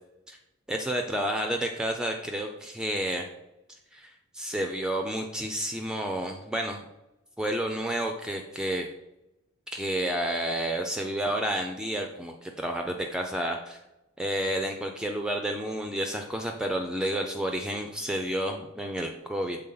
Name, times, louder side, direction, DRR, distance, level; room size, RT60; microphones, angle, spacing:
voice 1, 0.7-3.3 3.9-6.8 7.4-8.9 9.7-13.8 14.2-19.6, right 1 dB, 5° right, 3 dB, 0.3 m, -30 dB
6.6 x 3.7 x 3.9 m, 0.91 s
head